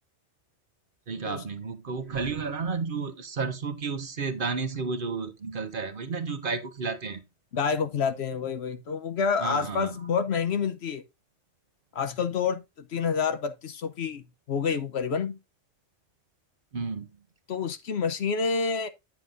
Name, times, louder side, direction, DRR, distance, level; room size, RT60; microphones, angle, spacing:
voice 1, 1.1-7.2 9.4-10.0 16.7-17.1, right 4 dB, 50° right, 1.0 m, -32 dB
voice 2, 7.5-11.0 11.9-15.4 17.5-18.9, left 6 dB, 65° left, 1.0 m, -28 dB
9.2 x 7.3 x 2.6 m
omnidirectional pair, 1.2 m